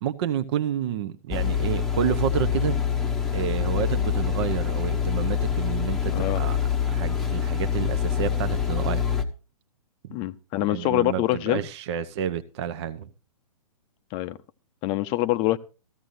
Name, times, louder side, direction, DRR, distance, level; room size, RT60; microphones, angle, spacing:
voice 1, 0.0-2.8 3.3-6.6 6.9-9.0 10.6-13.1, right 9 dB, 45° right, 0.8 m, -29 dB
sound 1, 1.3-9.2, left 8 dB, ahead, 0.9 m, -25 dB
voice 2, 6.1-6.4 10.1-11.6 14.1-14.4 14.8-15.6, left 15 dB, 25° left, 0.6 m, -25 dB
15.0 x 14.5 x 2.6 m
hypercardioid pair, 130°, 19 cm